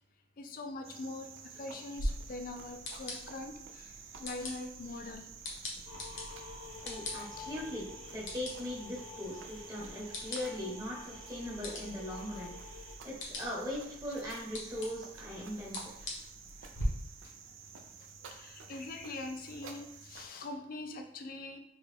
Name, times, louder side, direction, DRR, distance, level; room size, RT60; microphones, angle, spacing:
voice 1, 0.4-5.3 7.4-7.5 14.2-14.3 15.4-15.5 16.6-16.7 17.2-17.3 18.3-21.6, left 2 dB, 45° left, 5 dB, 0.4 m, -43 dB
Cricket, 0.8-20.3, right 5 dB, 75° right, 0.4 m, -51 dB
sound 1, 2.0-16.8, left 1 dB, 60° left, 0.9 m, -45 dB
sound 2, 5.9-13.0, left 4 dB, 90° left, 0.7 m, -49 dB
voice 2, 6.8-12.5 13.0-16.1, left 1 dB, 15° right, -5 dB, 0.9 m, -40 dB
3.8 x 2.3 x 3.4 m, 0.84 s
head